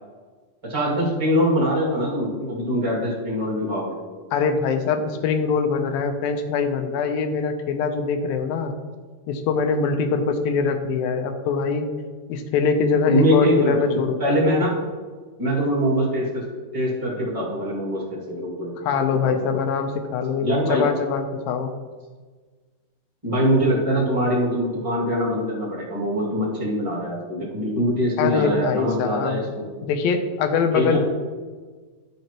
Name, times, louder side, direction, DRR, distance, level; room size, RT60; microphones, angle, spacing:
voice 1, 0.6-4.0 13.1-14.8 15.4-16.4 16.7-18.7 19.2-19.3 20.4-20.9 23.2-29.7 30.7-31.0, equal, 15° right, -5 dB, 1.3 m, -23 dB
voice 2, 4.3-8.7 9.3-11.9 12.3-14.4 18.8-21.7 28.2-31.0, left 5 dB, 80° left, 7 dB, 2.4 m, -23 dB
11.5 x 7.0 x 3.0 m, 1.4 s
omnidirectional pair, 4.2 m